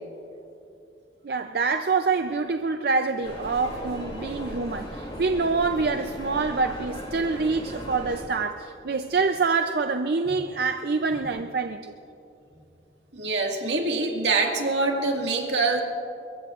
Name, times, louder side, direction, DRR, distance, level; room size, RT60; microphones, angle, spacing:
voice 1, 1.2-11.9, right 4 dB, 55° right, 7 dB, 0.5 m, -26 dB
sound 1, 3.2-8.2, equal, 30° left, 2.8 m, -37 dB
voice 2, 13.1-15.8, right 3 dB, 80° right, 1 dB, 1.9 m, -25 dB
24.0 x 22.0 x 2.5 m, 2.8 s
head